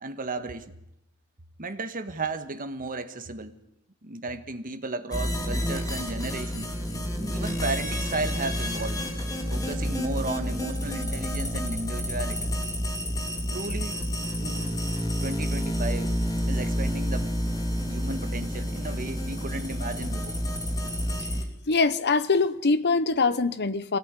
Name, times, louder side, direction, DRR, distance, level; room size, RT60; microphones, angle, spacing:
voice 1, 0.0-0.6 1.6-3.5 4.0-6.7 7.3-9.0 9.4-12.5 13.5-14.1 14.4-14.8 15.2-16.1 16.4-17.3 17.8-20.4, right 2 dB, 40° right, 1.6 m, -34 dB
sound 1, 5.1-21.4, equal, 15° left, 3.3 m, -29 dB
voice 2, 21.7-24.0, left 4 dB, 50° left, 1.1 m, -23 dB
24.0 x 17.5 x 9.8 m
head